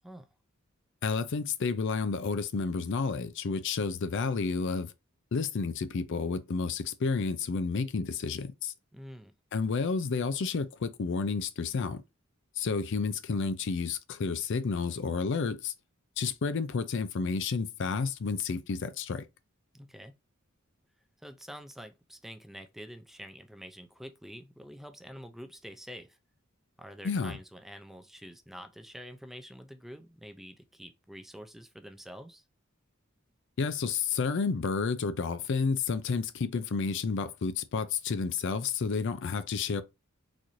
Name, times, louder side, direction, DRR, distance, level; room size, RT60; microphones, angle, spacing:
voice 1, 1.0-4.9 5.3-8.7 9.5-12.0 12.6-15.7 16.2-19.2 27.0-27.4 33.6-39.8, left 5 dB, 60° left, 0.4 m, -31 dB
voice 2, 8.9-9.3 19.7-20.1 21.2-26.2 26.8-32.4, equal, ahead, 0.3 m, -47 dB
4.0 x 2.5 x 3.0 m
head